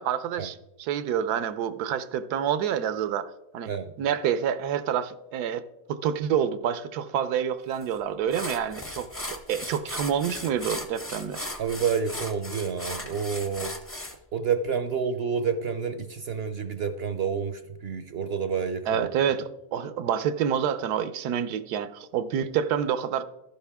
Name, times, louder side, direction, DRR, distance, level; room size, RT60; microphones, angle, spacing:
voice 1, 0.0-3.7 4.0-11.4 18.9-23.2, right 8 dB, 85° right, 14 dB, 1.2 m, -28 dB
sound 1, 7.8-7.9 8.3-14.2, left 1 dB, 15° left, 0.5 m, -37 dB
voice 2, 11.6-13.7 14.3-19.1, right 6 dB, 60° right, 9 dB, 0.6 m, -29 dB
12.0 x 9.9 x 3.5 m, 0.91 s
omnidirectional pair, 1.6 m